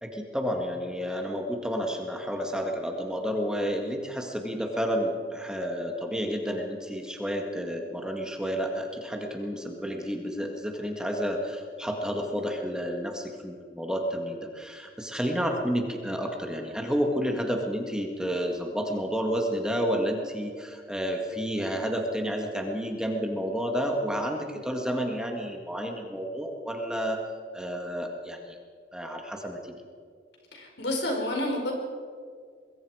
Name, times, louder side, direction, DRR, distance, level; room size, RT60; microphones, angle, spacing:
voice 1, 0.0-27.2 27.5-28.6 28.9-29.7, equal, 5° right, 2 dB, 1.8 m, -30 dB
voice 2, 30.5-31.7, left 1 dB, 70° left, 1 dB, 4.7 m, -29 dB
24.5 x 21.5 x 4.9 m, 2.1 s
head